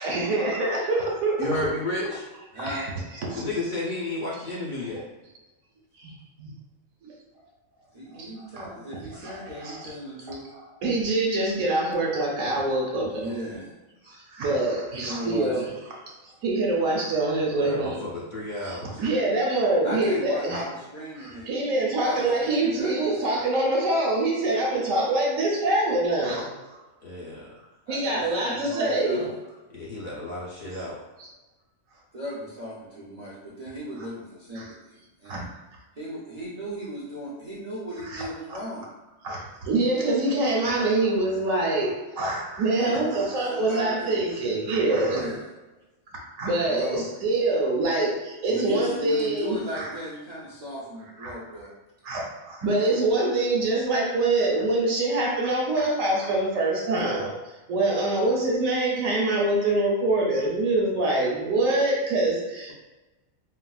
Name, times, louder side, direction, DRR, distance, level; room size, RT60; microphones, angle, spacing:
voice 1, 0.0-1.7 2.6-2.9 3.3-3.5 6.0-6.5 7.0-7.1 8.1-8.3 8.6-8.7 9.2-9.9 10.8-13.3 14.0-15.7 16.2-18.2 18.6-20.6 21.2-26.8 27.9-29.3 31.2-31.3 34.5-34.7 35.2-35.4 38.1-38.2 39.2-45.3 46.4-49.9 51.2-51.3 52.0-57.3 57.7-62.7, right 2 dB, 80° right, -2 dB, 1.2 m, -25 dB
voice 2, 1.4-2.2 3.3-5.0 17.6-19.0 27.0-27.5 29.7-31.0, left 1 dB, 45° left, -7 dB, 0.8 m, -32 dB
voice 3, 2.5-2.9 7.9-10.5 13.1-13.7 14.9-15.7 19.8-21.5 22.0-23.3 27.9-29.3 32.1-35.5 36.0-38.9 42.7-44.2 45.0-45.5 46.7-47.1 48.5-51.7, equal, 45° right, -8 dB, 0.5 m, -37 dB
4.3 x 2.0 x 2.3 m, 1.1 s
omnidirectional pair, 1.4 m